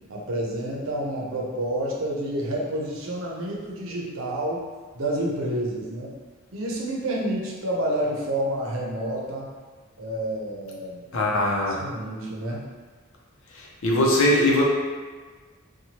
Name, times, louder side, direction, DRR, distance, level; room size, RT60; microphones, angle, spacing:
voice 1, 0.1-4.6 4.9-6.1 6.5-9.5 10.0-11.3 11.7-12.7, right 1 dB, 85° right, -3 dB, 0.6 m, -29 dB
voice 2, 11.1-11.8 13.5-14.6, left 1 dB, 80° left, -3 dB, 0.6 m, -21 dB
2.8 x 2.2 x 2.9 m, 1.4 s
head